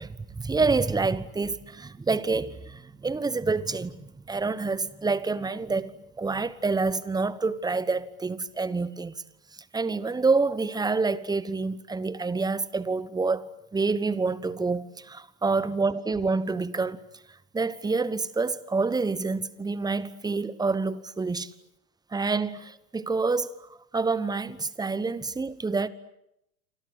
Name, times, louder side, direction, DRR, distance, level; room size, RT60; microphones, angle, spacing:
voice 1, 0.0-9.1 9.6-17.0 17.5-21.5 22.1-25.9, right 4 dB, 10° right, 1.2 m, -27 dB
28.5 x 25.5 x 8.0 m
figure-of-eight pair, 85°, 43 cm